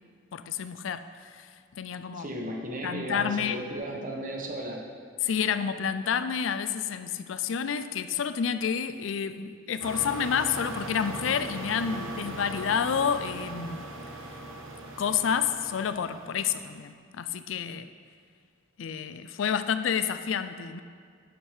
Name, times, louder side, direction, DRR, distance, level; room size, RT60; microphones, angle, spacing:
voice 1, 0.3-2.3 2.8-3.6 5.2-13.9 15.0-17.9 18.8-20.8, left 7 dB, 75° left, 11 dB, 0.4 m, -29 dB
voice 2, 2.1-4.8 11.9-12.1, right 1 dB, 45° right, 0 dB, 1.2 m, -35 dB
sound 1, 9.8-16.8, right 2 dB, 85° right, 1.0 m, -39 dB
11.5 x 4.5 x 4.9 m, 2.1 s
head